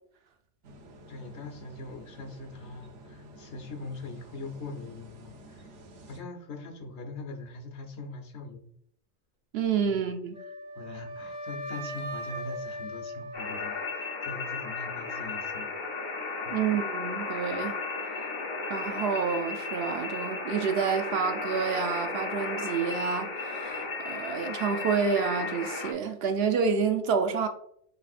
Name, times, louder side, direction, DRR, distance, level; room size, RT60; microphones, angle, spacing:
sound 1, 0.6-6.2, right 1 dB, 85° right, 1.0 m, -51 dB
voice 1, 1.1-5.8 6.1-8.7 9.8-10.1 10.8-15.7 16.4-16.7, left 3 dB, 70° left, 1.1 m, -42 dB
voice 2, 9.5-10.4 16.5-17.7 18.7-27.5, right 6 dB, 65° right, 0.7 m, -28 dB
Wind instrument woodwind instrument, 10.3-14.5, equal, 50° right, 1.9 m, -39 dB
sound 2, 13.3-25.9, left 4 dB, 45° left, 0.9 m, -34 dB
5.9 x 3.4 x 2.4 m
omnidirectional pair, 1.2 m